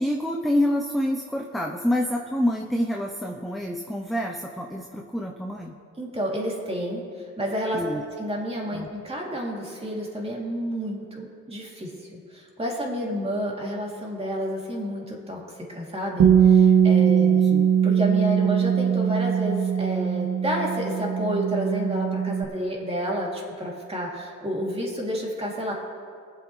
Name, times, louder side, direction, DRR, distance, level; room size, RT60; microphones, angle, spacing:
voice 1, 0.0-5.7 7.7-8.0 8.7-8.9 17.0-17.7, left 1 dB, ahead, 1 dB, 0.7 m, -27 dB
voice 2, 6.0-15.4 15.7-17.3 17.8-25.7, equal, 20° right, -3 dB, 2.7 m, -30 dB
Bass guitar, 16.2-22.4, right 8 dB, 60° right, 1.0 m, -20 dB
22.0 x 7.7 x 3.2 m, 2.2 s
cardioid pair, 95°, 29 cm